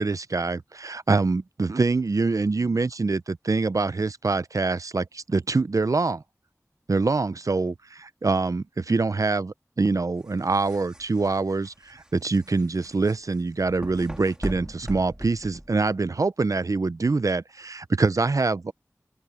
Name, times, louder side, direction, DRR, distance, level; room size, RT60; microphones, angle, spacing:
voice 1, 0.0-6.2 6.9-18.7, right 3 dB, 70° right, 0.5 m, -25 dB
sound 1, 10.2-16.1, equal, 15° right, 2.1 m, -39 dB
open air
wide cardioid pair, 55°, 6 cm